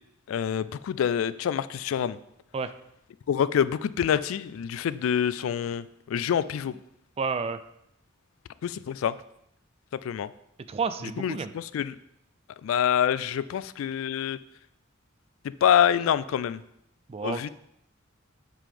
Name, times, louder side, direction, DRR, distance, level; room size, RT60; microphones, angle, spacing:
voice 1, 0.3-2.2 3.3-6.7 8.6-9.1 10.0-10.3 11.2-12.0 12.6-14.4 15.6-16.6 17.2-17.5, left 8 dB, 80° left, 17 dB, 0.3 m, -26 dB
voice 2, 7.2-7.6 10.7-11.5 17.1-17.5, right 5 dB, 30° right, 12 dB, 0.3 m, -30 dB
7.5 x 3.8 x 5.0 m, 0.78 s
head